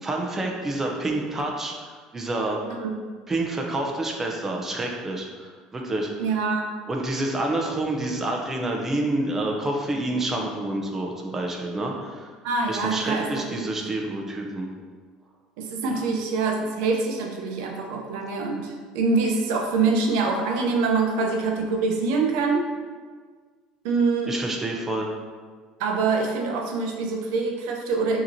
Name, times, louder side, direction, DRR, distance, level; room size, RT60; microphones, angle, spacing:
voice 1, 0.0-2.6 3.3-6.1 6.9-12.3 12.7-14.7 24.3-25.1, right 2 dB, 15° right, 0 dB, 0.6 m, -28 dB
voice 2, 6.2-6.7 12.4-13.7 15.6-22.7 23.8-24.3 25.8-28.2, right 4 dB, 85° right, 2 dB, 0.6 m, -25 dB
6.1 x 2.9 x 2.7 m, 1.5 s
cardioid pair, 125°, 2 cm